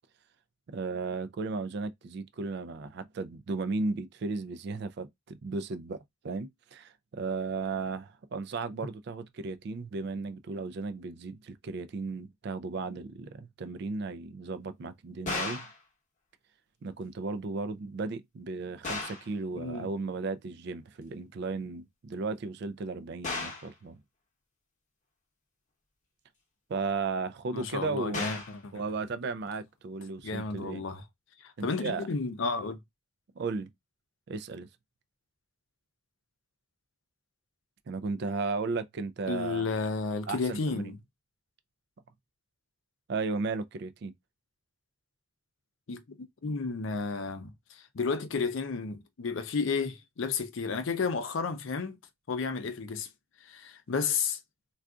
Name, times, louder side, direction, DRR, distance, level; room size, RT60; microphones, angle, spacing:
voice 1, 0.7-15.7 16.8-24.0 26.7-28.3 28.7-30.8 31.6-32.1 33.4-33.7 34.3-34.7 37.9-39.7 40.3-40.8 43.1-44.1, right 4 dB, 50° right, 0.3 m, -35 dB
sound 1, 15.3-15.8 18.8-19.3 23.2-23.7 28.1-28.6, left 3 dB, 35° left, 0.8 m, -35 dB
voice 2, 19.5-19.9 27.5-28.7 30.2-31.0 31.4-32.8 39.2-41.0 45.9-46.0 46.4-52.0 52.3-53.1 53.4-54.4, left 4 dB, 65° left, 0.5 m, -32 dB
3.6 x 2.3 x 2.3 m
head